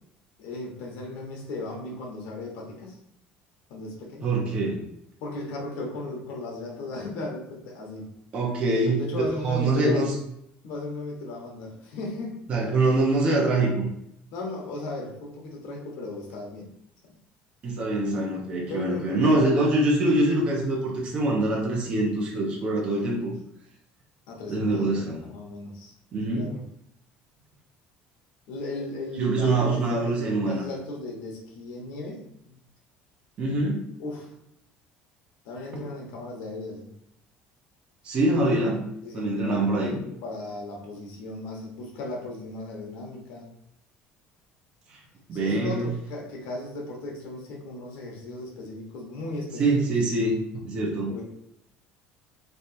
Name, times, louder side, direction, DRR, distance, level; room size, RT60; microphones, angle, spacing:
voice 1, 0.4-3.0 3.7-4.3 5.2-8.1 8.7-10.0 10.6-12.4 14.3-16.7 17.0-17.1 18.6-19.3 24.3-25.9 26.3-26.6 28.5-32.6 34.0-34.3 35.4-36.9 39.0-43.5 45.3-49.8 51.1-51.2, left 2 dB, 75° left, 0 dB, 1.2 m, -36 dB
voice 2, 4.2-4.8 8.3-9.0 9.4-10.1 12.5-13.9 17.6-23.3 24.5-25.2 26.1-26.5 29.2-30.7 33.4-34.0 38.0-38.9 39.1-40.0 44.9-45.0 45.3-45.9 49.6-51.1, right 2 dB, 30° right, -3 dB, 0.9 m, -24 dB
3.4 x 2.8 x 4.2 m, 0.76 s
cardioid pair, 165°, 4 cm